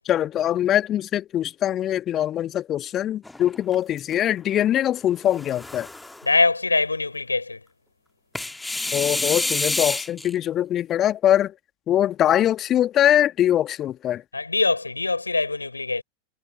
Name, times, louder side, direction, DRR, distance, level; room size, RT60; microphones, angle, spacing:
voice 1, 0.0-5.9 8.9-11.5 11.9-14.2, left 11 dB, 30° left, 1.6 m, -22 dB
sound 1, 3.2-4.1 5.2-6.3 8.3-10.3, left 2 dB, 5° left, 1.9 m, -28 dB
voice 2, 6.2-7.6 14.3-16.0, left 3 dB, 80° left, 4.9 m, -23 dB
figure-of-eight pair, 90°, 0 cm